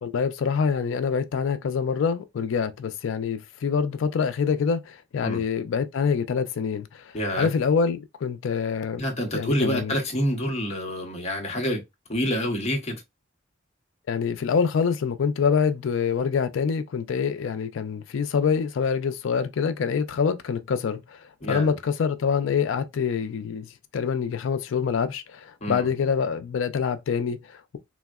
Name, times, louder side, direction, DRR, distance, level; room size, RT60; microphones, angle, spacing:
voice 1, 0.0-9.0 9.3-9.9 14.1-23.7 23.9-27.8, left 6 dB, 70° left, 0.4 m, -26 dB
voice 2, 7.1-7.5 9.0-11.8 12.1-13.0 21.4-21.7 25.6-25.9, equal, 35° left, 0.8 m, -27 dB
3.4 x 2.0 x 2.2 m
head